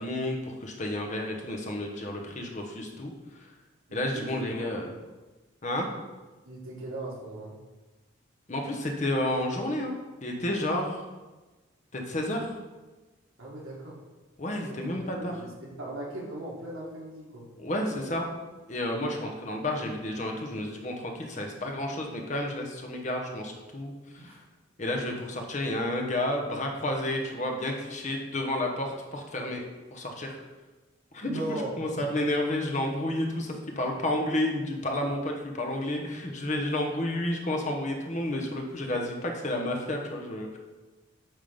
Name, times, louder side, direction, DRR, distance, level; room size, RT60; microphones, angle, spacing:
voice 1, 0.0-3.5 3.9-4.9 5.6-5.9 8.5-9.9 10.2-11.0 11.9-12.6 14.4-15.3 17.6-18.3 18.7-24.4 24.8-29.6 29.9-30.4 31.1-31.4 31.8-40.6, left 1 dB, 35° left, 1 dB, 0.9 m, -31 dB
voice 2, 3.9-4.7 6.4-7.5 13.4-14.0 14.7-14.9 15.1-17.5 24.2-24.4 31.2-32.1, right 1 dB, 80° right, -3 dB, 2.0 m, -38 dB
8.8 x 3.7 x 5.2 m, 1.2 s
head